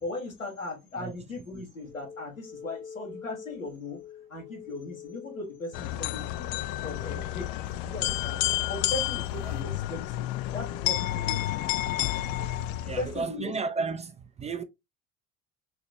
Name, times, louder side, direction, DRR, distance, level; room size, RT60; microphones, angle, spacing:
voice 1, 0.0-4.0 4.3-6.5 6.8-8.4 8.7-10.3 10.5-11.7 13.0-13.5, left 2 dB, 85° left, 1.6 m, -38 dB
sound 1, 1.8-11.0, left 6 dB, 30° left, 1.0 m, -48 dB
sound 2, 5.7-13.3, left 15 dB, 50° left, 0.5 m, -30 dB
voice 2, 12.8-14.6, right 4 dB, 15° right, 0.4 m, -33 dB
5.7 x 2.9 x 2.8 m
figure-of-eight pair, 60°, 39 cm